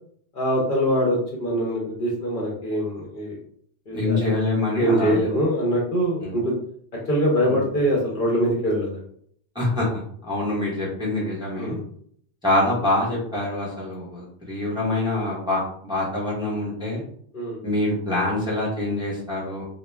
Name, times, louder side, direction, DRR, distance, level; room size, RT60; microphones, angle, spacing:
voice 1, 0.3-3.4 3.9-4.2 4.8-6.5 7.1-9.0 11.5-11.8 17.3-17.6, equal, 55° left, -4 dB, 0.8 m, -23 dB
voice 2, 3.9-5.2 6.2-6.3 7.5-7.6 9.5-11.8 12.4-17.0 17.6-19.6, left 2 dB, 5° right, -5 dB, 0.8 m, -25 dB
2.3 x 2.2 x 3.2 m, 0.63 s
omnidirectional pair, 1.2 m